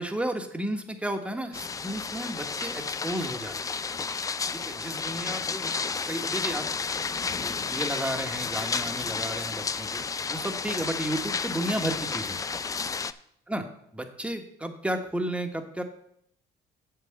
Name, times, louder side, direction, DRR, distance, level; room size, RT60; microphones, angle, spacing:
voice 1, 0.0-3.7 4.5-6.7 7.4-10.0 10.3-12.4 13.5-13.6 14.0-15.8, right 1 dB, 5° right, 6 dB, 1.2 m, -33 dB
sound 1, 1.5-13.1, left 5 dB, 20° left, 0.4 m, -32 dB
7.5 x 5.8 x 7.5 m, 0.70 s
cardioid pair, 110°, 17 cm